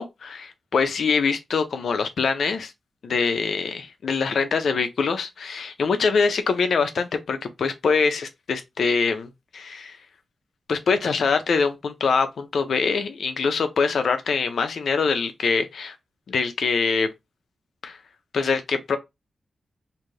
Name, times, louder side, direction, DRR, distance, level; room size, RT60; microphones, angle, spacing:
voice 1, 0.0-2.7 3.0-10.0 10.7-16.0 16.3-17.1 17.8-18.0 18.3-19.0, left 5 dB, 75° left, 0.5 m, -24 dB
2.6 x 2.5 x 3.1 m
cardioid pair, 85°, 0 cm